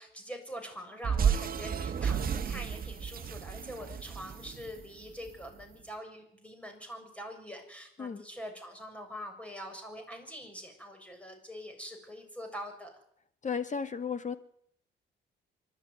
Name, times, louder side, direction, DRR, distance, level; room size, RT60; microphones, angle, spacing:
voice 1, 0.0-13.0, equal, 5° left, 4 dB, 7.2 m, -44 dB
sound 1, 1.0-5.4, right 7 dB, 45° right, 1.5 m, -32 dB
voice 2, 13.4-14.4, left 6 dB, 40° left, 11 dB, 1.8 m, -34 dB
26.0 x 12.5 x 9.6 m, 0.71 s
cardioid pair, 90°, 20 cm